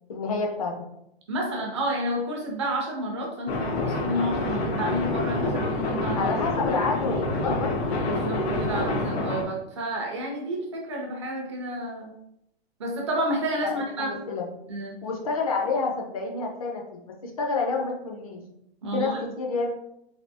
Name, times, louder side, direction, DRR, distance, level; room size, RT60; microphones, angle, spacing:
voice 1, 0.1-0.7 6.2-7.9 13.6-14.5 15.0-18.4 18.9-19.7, left 4 dB, 35° left, 1 dB, 0.4 m, -29 dB
voice 2, 1.3-6.3 8.1-12.1 12.8-14.1 14.7-15.0 18.8-19.2, right 1 dB, 30° right, 0 dB, 0.4 m, -30 dB
sound 1, 3.5-9.4, left 2 dB, 85° left, 0.8 m, -27 dB
3.3 x 2.6 x 2.7 m, 0.78 s
hypercardioid pair, 170°, 31 cm